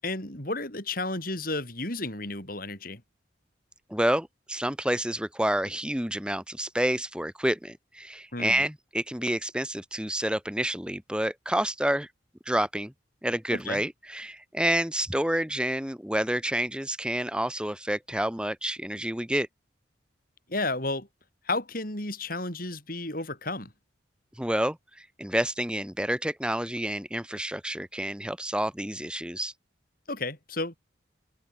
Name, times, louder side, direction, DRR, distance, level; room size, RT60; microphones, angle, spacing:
voice 1, 0.0-3.0 8.3-8.6 13.5-13.8 20.5-21.1 21.4-23.7 30.1-30.7, left 2 dB, 45° left, 7.8 m, -32 dB
voice 2, 3.9-12.1 12.4-12.9 13.2-19.5 24.4-29.5, right 1 dB, 5° right, 1.4 m, -29 dB
head